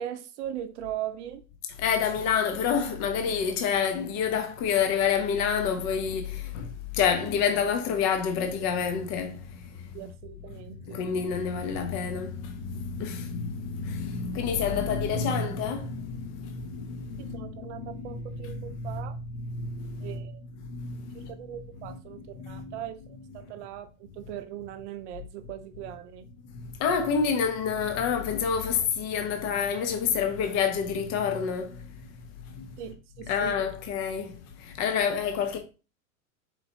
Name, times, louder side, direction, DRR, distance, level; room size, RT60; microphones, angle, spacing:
voice 1, 0.0-1.4 9.9-11.0 17.3-19.2 20.0-20.4 21.1-26.3 32.8-33.6, right 11 dB, 55° right, 0.6 m, -39 dB
voice 2, 1.8-9.9 10.9-20.3 20.6-21.4 21.9-22.0 22.4-22.8 26.5-31.9 32.6-32.7 33.3-35.6, left 6 dB, 40° left, 0.8 m, -28 dB
4.5 x 4.0 x 2.7 m
hypercardioid pair, 110°, 41 cm